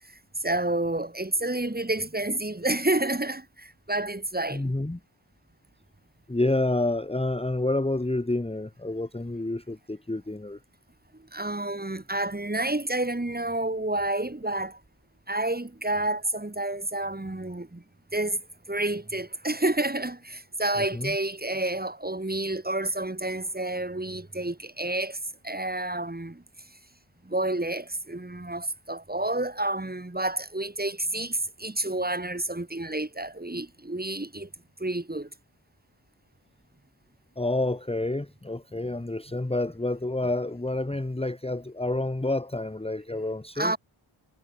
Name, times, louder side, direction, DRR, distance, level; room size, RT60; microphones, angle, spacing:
voice 1, 0.1-4.7 11.1-14.8 15.3-17.8 18.1-18.4 18.7-25.2 25.4-26.4 27.2-34.5 34.8-35.3 43.6-43.8, right 2 dB, 20° right, 2.8 m, -29 dB
voice 2, 4.5-5.0 6.3-10.6 20.8-21.2 37.4-43.8, left 2 dB, 10° left, 1.3 m, -29 dB
wide cardioid pair, 65°, 50 cm